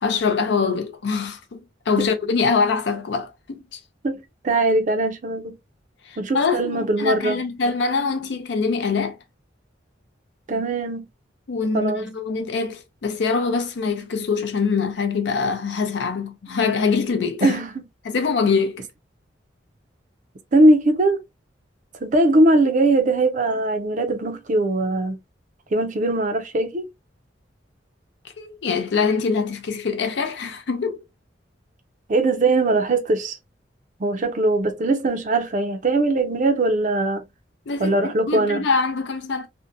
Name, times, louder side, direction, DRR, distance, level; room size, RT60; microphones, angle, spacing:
voice 1, 0.0-1.6 1.9-3.8 6.0-9.2 11.5-17.6 18.0-18.8 28.4-31.0 37.7-39.5, left 5 dB, 65° left, 0.5 m, -24 dB
voice 2, 4.0-5.6 6.2-7.4 10.5-11.1 11.7-12.1 17.4-17.8 20.5-21.2 22.0-25.2 25.7-26.9 32.1-33.4 34.0-37.2 37.8-38.6, right 2 dB, 40° right, 0.5 m, -20 dB
2.6 x 2.1 x 2.4 m
head